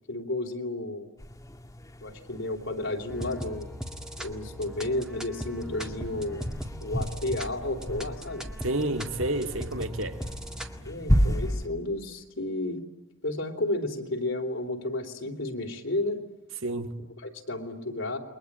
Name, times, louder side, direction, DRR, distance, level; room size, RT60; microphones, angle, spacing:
voice 1, 0.1-1.1 2.0-3.7 4.2-6.5 6.8-8.5 10.8-12.8 13.2-16.2 17.2-18.2, left 2 dB, 65° left, 3.7 m, -32 dB
sound 1, 1.2-11.7, equal, 15° left, 1.6 m, -33 dB
sound 2, 3.1-10.8, equal, 5° right, 2.0 m, -39 dB
voice 2, 8.6-10.2 16.6-17.1, right 1 dB, 70° right, 2.2 m, -30 dB
29.5 x 22.5 x 8.9 m
head